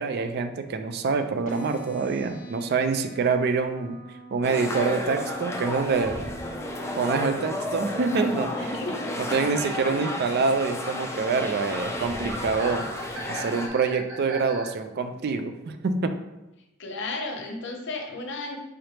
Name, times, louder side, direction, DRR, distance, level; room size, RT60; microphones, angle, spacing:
voice 1, 0.0-4.0 4.3-6.2 7.0-8.5 9.2-12.9 13.3-16.2, right 4 dB, 55° right, 8 dB, 0.4 m, -26 dB
sound 1, 1.4-9.5, right 4 dB, 40° left, 1.0 m, -44 dB
sound 2, 4.4-13.7, left 1 dB, 15° left, 0.4 m, -32 dB
voice 2, 8.6-9.4 16.8-18.6, left 2 dB, 60° left, 2 dB, 0.7 m, -34 dB
sound 3, 10.0-14.7, right 2 dB, 85° right, 0.9 m, -39 dB
4.9 x 3.0 x 3.2 m, 0.98 s
head